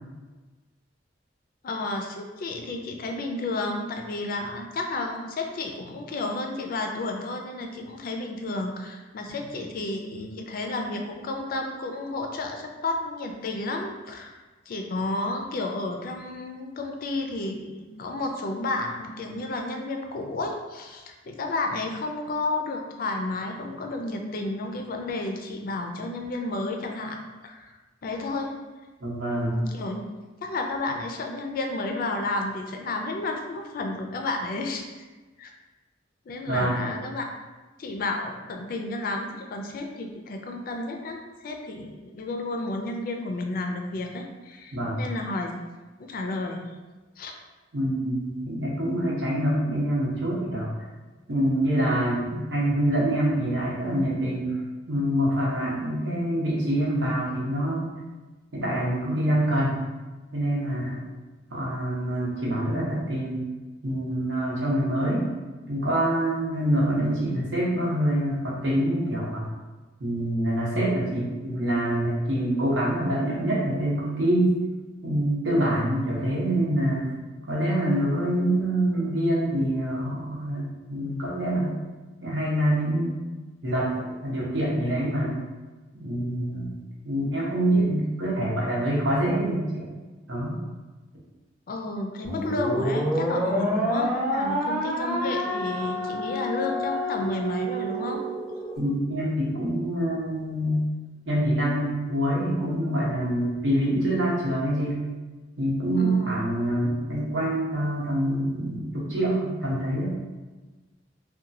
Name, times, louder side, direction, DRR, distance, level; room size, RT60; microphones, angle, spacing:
voice 1, 1.6-14.4 14.7-27.7 28.0-28.5 29.4-30.0 30.4-35.1 35.4-35.5 36.3-37.2 37.8-45.5 46.0-46.6 47.2-47.3 91.7-98.2 106.0-106.4, left 2 dB, 50° left, 3 dB, 0.3 m, -31 dB
voice 2, 29.0-29.6 36.5-36.9 44.7-45.0 47.7-50.7 51.3-54.6 54.9-57.9 58.5-59.8 60.3-61.0 61.5-63.5 63.8-65.3 65.7-69.5 70.0-74.5 75.0-77.1 77.5-81.7 82.2-83.1 83.6-83.9 84.2-85.4 86.0-86.8 87.0-89.8 90.3-90.6 98.8-100.9 101.3-105.0 105.6-110.2, right 1 dB, 80° right, -5 dB, 0.9 m, -25 dB
sound 1, 92.2-98.8, equal, 5° right, 0.6 m, -28 dB
2.9 x 2.2 x 2.6 m, 1.2 s
head